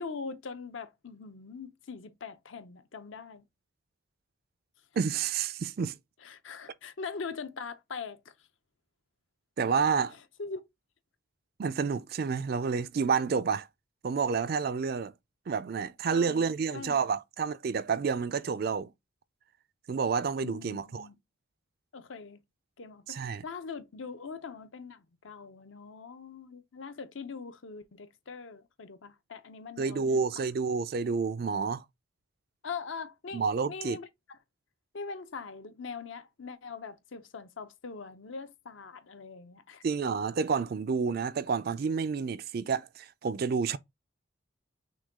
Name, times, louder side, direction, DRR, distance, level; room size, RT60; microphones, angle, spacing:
voice 1, 0.0-3.4 6.2-8.3 10.1-10.6 16.1-17.1 20.4-21.2 21.9-22.4 22.8-30.2 32.6-34.4 34.9-39.8, left 5 dB, 65° left, 0.7 m, -42 dB
voice 2, 5.0-5.9 9.6-10.1 11.6-13.7 14.0-15.1 15.5-18.9 19.9-21.1 23.1-23.4 29.8-31.8 33.3-34.0 39.8-43.8, right 5 dB, 45° right, 0.3 m, -29 dB
6.1 x 2.3 x 3.5 m
head